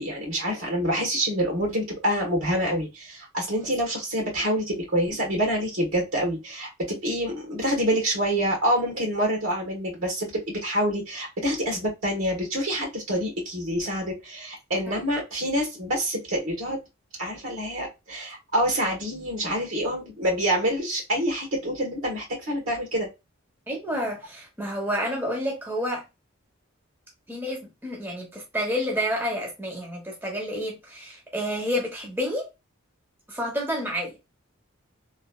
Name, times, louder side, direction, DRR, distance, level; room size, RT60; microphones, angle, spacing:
voice 1, 0.0-16.8 17.2-23.1, equal, 70° right, 1.4 m, -27 dB
voice 2, 23.7-26.0 27.3-32.5 33.3-34.2, equal, 10° right, 0.7 m, -29 dB
3.1 x 2.3 x 2.3 m
head